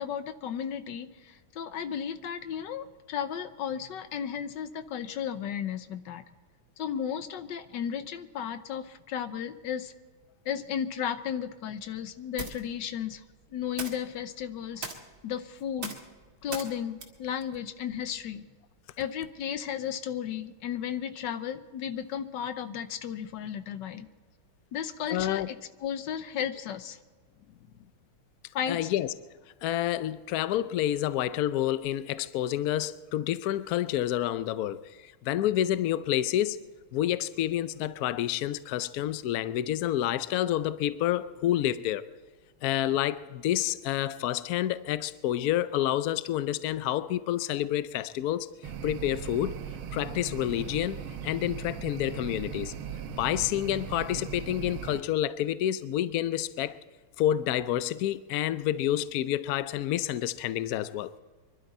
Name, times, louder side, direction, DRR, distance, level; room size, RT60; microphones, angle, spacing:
voice 1, 0.0-6.2 6.8-9.9 10.4-13.2 13.5-14.9 15.2-16.0 16.4-18.4 19.0-24.1 24.7-27.0 28.5-28.8, left 8 dB, 65° left, 1.4 m, -34 dB
sound 1, 11.2-18.4, right 3 dB, 40° right, 1.9 m, -44 dB
voice 2, 25.1-25.5 28.7-29.1 29.6-36.6 36.9-42.0 42.6-48.5 48.8-49.5 49.9-52.7 53.2-56.8 57.2-61.1, left 12 dB, 85° left, 0.8 m, -29 dB
sound 2, 48.6-55.0, right 8 dB, 80° right, 1.7 m, -38 dB
24.5 x 12.0 x 4.2 m
omnidirectional pair, 2.3 m